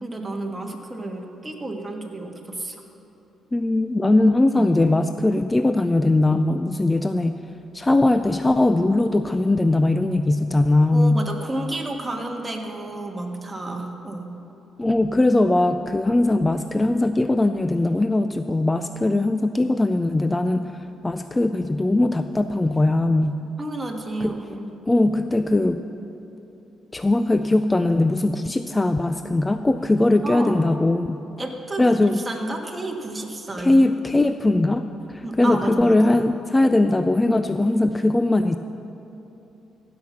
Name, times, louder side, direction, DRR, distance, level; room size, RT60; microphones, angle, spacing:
voice 1, 0.0-2.8 4.5-4.7 10.9-14.3 23.6-24.7 30.2-30.6 31.4-33.8 35.2-36.2, right 2 dB, 15° right, 1 dB, 1.5 m, -31 dB
voice 2, 3.5-7.4 7.7-11.2 14.8-23.4 24.2-24.3 24.9-25.8 26.9-31.2 31.8-32.2 33.6-38.6, left 2 dB, 15° left, 9 dB, 0.3 m, -20 dB
15.0 x 6.0 x 7.2 m, 2.9 s
cardioid pair, 90°, 0 cm